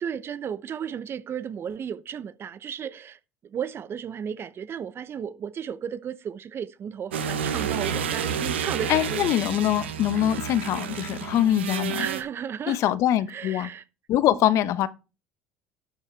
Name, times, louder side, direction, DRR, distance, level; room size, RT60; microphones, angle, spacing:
voice 1, 0.0-9.3 12.0-12.8 13.3-13.8 14.3-14.4, right 8 dB, 40° right, 0.8 m, -34 dB
sound 1, 7.1-12.2, right 7 dB, 85° right, 0.8 m, -30 dB
voice 2, 8.9-12.1 12.7-13.7 14.1-14.9, left 12 dB, 60° left, 0.9 m, -23 dB
12.0 x 7.1 x 3.3 m
hypercardioid pair, 70°, 6 cm